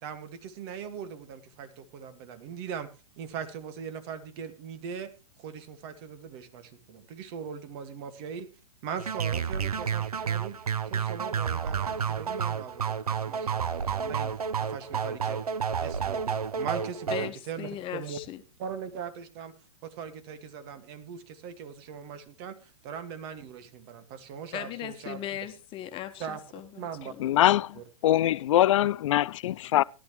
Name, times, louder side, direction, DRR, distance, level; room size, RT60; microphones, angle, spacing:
voice 1, 0.0-2.9 3.2-5.1 5.4-8.5 8.8-10.6 10.9-14.3 14.6-15.4 15.8-18.2 18.6-19.5 19.8-25.2 26.2-26.4 26.7-27.1 27.8-27.9, right 7 dB, 45° right, 2.0 m, -40 dB
sound 1, 9.0-17.3, right 7 dB, 85° right, 0.9 m, -30 dB
voice 2, 17.1-18.4 24.5-27.3, left 12 dB, 30° left, 1.4 m, -38 dB
voice 3, 27.2-29.8, left 13 dB, 55° left, 0.5 m, -23 dB
17.0 x 11.5 x 3.2 m
hypercardioid pair, 120°, 19 cm